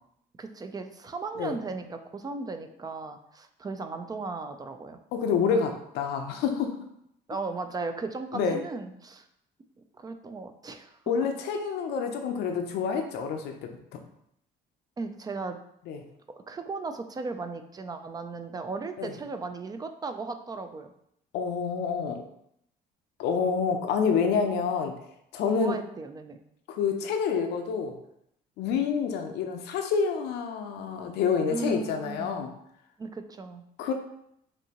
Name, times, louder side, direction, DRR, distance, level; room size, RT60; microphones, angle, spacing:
voice 1, 0.4-5.0 7.3-9.3 9.9-11.0 15.0-15.6 16.5-20.9 25.5-26.4 31.5-32.3 33.0-33.6, right 3 dB, 25° right, 7 dB, 0.4 m, -36 dB
voice 2, 5.1-6.7 8.3-8.6 11.1-14.0 15.9-16.0 19.0-19.1 21.3-22.2 23.2-24.9 25.3-25.8 26.7-28.0 28.6-32.5 33.8-33.9, left 6 dB, 80° left, 4 dB, 0.6 m, -28 dB
5.2 x 2.7 x 2.9 m, 0.74 s
cardioid pair, 110°, 17 cm